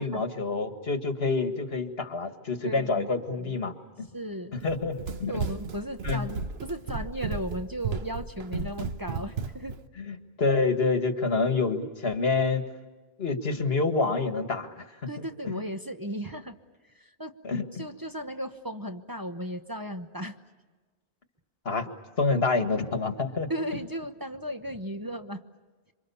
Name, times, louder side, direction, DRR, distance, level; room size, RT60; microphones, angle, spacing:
voice 1, 0.0-4.1 4.6-5.4 6.0-6.2 10.0-12.6 13.2-14.8 15.4-15.5 17.4-17.8 21.7-21.9 22.2-23.5, left 3 dB, 75° left, 7 dB, 2.0 m, -27 dB
voice 2, 2.6-3.6 4.1-4.5 5.3-9.8 15.1-16.6 16.9-17.4 17.7-20.3 23.5-25.4, equal, 20° right, 5 dB, 1.0 m, -36 dB
Run, 4.6-9.8, right 5 dB, 80° right, 1.2 m, -34 dB
27.5 x 25.0 x 7.1 m, 1.3 s
omnidirectional pair, 1.0 m